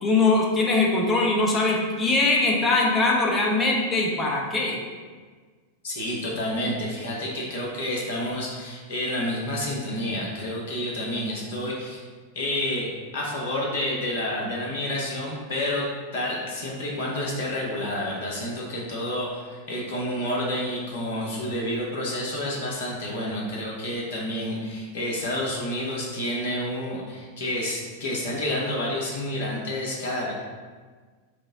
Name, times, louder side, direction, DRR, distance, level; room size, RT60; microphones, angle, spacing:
voice 1, 0.0-4.8, left 3 dB, 20° left, -2 dB, 0.8 m, -22 dB
voice 2, 5.8-12.0 12.3-12.9 13.1-15.9 16.1-30.3, left 1 dB, 60° left, -2 dB, 1.0 m, -29 dB
4.8 x 2.1 x 3.8 m, 1.5 s
figure-of-eight pair, 90°, 0 cm